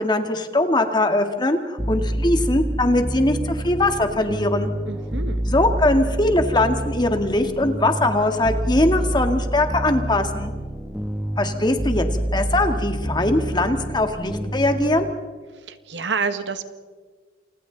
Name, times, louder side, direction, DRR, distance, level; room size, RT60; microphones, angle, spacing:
voice 1, 0.0-4.7 5.5-10.5 11.4-12.1 12.3-15.1, left 2 dB, 25° left, 6 dB, 1.8 m, -21 dB
sound 1, 1.8-15.1, right 1 dB, 5° right, 1.1 m, -27 dB
voice 2, 4.9-5.4 15.5-16.6, right 5 dB, 90° right, 9 dB, 1.6 m, -28 dB
30.0 x 28.0 x 4.0 m, 1.5 s
head